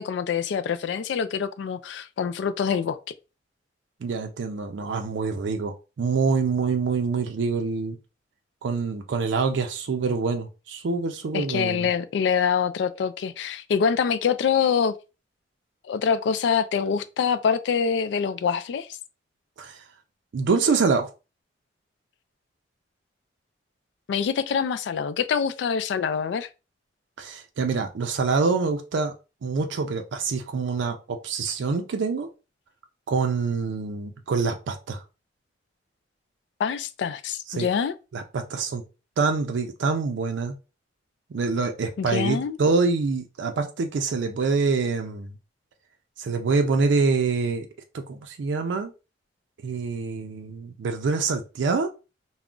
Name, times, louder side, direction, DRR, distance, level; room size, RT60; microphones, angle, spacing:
voice 1, 0.0-3.0 11.3-14.9 15.9-18.9 24.1-26.5 36.6-37.9 42.0-42.6, left 6 dB, 75° left, 0.3 m, -25 dB
voice 2, 4.0-8.0 8.6-11.9 19.6-19.8 20.3-21.1 27.2-29.1 29.4-32.3 33.1-35.0 37.5-37.7 38.1-38.8 39.2-40.5 41.3-45.3 46.2-47.7 47.9-48.9 49.6-51.9, right 4 dB, 80° right, 0.4 m, -25 dB
2.4 x 2.0 x 3.6 m
head